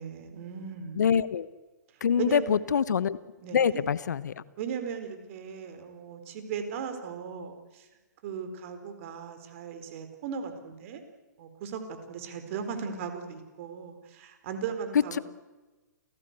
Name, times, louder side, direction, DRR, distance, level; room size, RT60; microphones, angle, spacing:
voice 1, 0.0-1.0 2.2-2.6 3.4-3.8 4.6-7.9 8.2-11.0 11.4-11.8 12.1-15.2, right 6 dB, 45° right, 8 dB, 4.3 m, -37 dB
voice 2, 1.0-1.5 2.0-3.2 3.5-4.3, left 7 dB, 70° left, 18 dB, 1.0 m, -25 dB
28.5 x 17.5 x 8.2 m, 1.2 s
hypercardioid pair, 125°, 10 cm